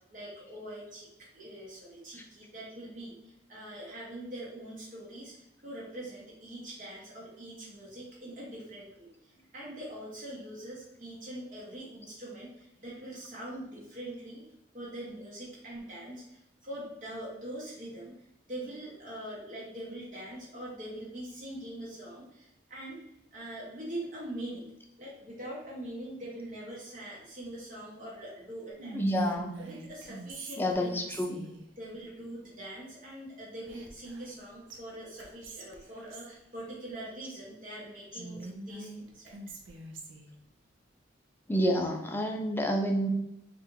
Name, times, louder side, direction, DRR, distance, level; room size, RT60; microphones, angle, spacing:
voice 1, 0.1-1.1 1.3-14.5 14.7-18.2 18.5-23.0 23.3-24.7 25.0-29.0 29.6-31.1 31.8-39.3, right 1 dB, 40° right, -6 dB, 0.7 m, -43 dB
Whispering, 28.8-31.6 33.7-34.4 34.7-34.8 35.2-36.3 38.1-40.3, right 1 dB, 75° right, 0.5 m, -43 dB
voice 2, 28.9-29.5 30.6-31.5 41.5-43.1, equal, 10° left, 2 dB, 0.3 m, -29 dB
3.4 x 2.5 x 2.9 m, 0.82 s
head